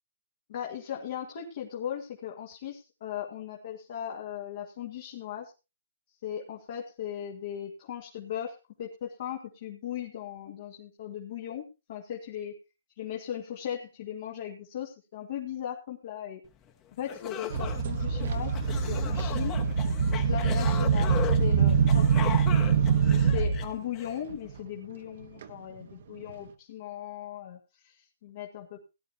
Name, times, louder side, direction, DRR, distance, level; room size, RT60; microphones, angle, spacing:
voice 1, 0.5-5.5 6.2-12.6 13.0-16.4 16.9-19.6 20.1-22.4 23.1-28.8, left 9 dB, 55° left, 0 dB, 2.1 m, -38 dB
sound 1, 16.7-16.8 17.1-24.2, left 9 dB, 25° left, 1.4 m, -38 dB
sound 2, 17.5-23.7 24.3-24.5 25.4-25.5 26.3-26.4, right 6 dB, 60° right, 1.3 m, -24 dB
18.0 x 10.5 x 2.9 m, 0.27 s
hypercardioid pair, 140°, 0 cm